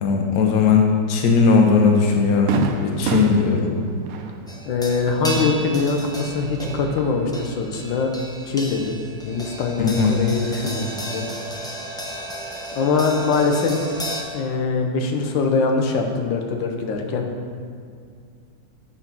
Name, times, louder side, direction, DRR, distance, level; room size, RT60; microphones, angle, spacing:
voice 1, 0.0-3.7 9.8-10.1, left 5 dB, 60° left, 1 dB, 1.1 m, -18 dB
Fireworks, 1.4-1.6 2.0-2.1 2.5-6.3 6.6-7.4, right 6 dB, 75° right, 0.8 m, -29 dB
sound 1, 4.5-14.2, right 1 dB, 5° left, 0.4 m, -33 dB
voice 2, 4.7-8.1 8.4-9.0 9.3-11.2 12.7-14.0 14.3-17.3, left 4 dB, 90° left, 3 dB, 1.5 m, -23 dB
8.3 x 3.9 x 5.9 m, 2.2 s
omnidirectional pair, 2.0 m